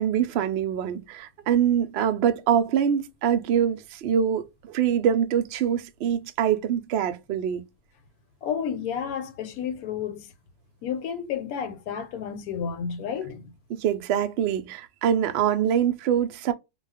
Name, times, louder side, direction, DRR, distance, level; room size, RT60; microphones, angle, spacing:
voice 1, 0.0-7.6 13.7-16.5, right 9 dB, 85° right, 0.5 m, -24 dB
voice 2, 8.4-10.3 10.8-13.5, left 7 dB, 75° left, 1.1 m, -31 dB
2.4 x 2.2 x 3.3 m
omnidirectional pair, 1.6 m